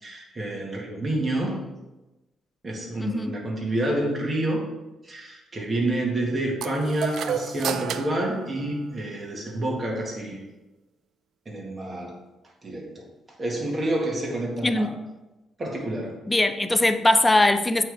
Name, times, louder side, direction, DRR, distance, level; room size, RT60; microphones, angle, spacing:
voice 1, 0.0-1.6 2.6-4.6 5.1-10.4 11.5-12.2 12.6-13.0 13.4-14.9 15.6-16.2, right 1 dB, 30° right, 1.8 m, -28 dB
voice 2, 3.0-3.3 14.6-15.0 16.3-17.8, left 2 dB, 15° left, 0.5 m, -21 dB
sound 1, 6.6-9.3, right 8 dB, 75° right, 0.4 m, -32 dB
8.4 x 3.4 x 3.5 m
cardioid pair, 90°, 0 cm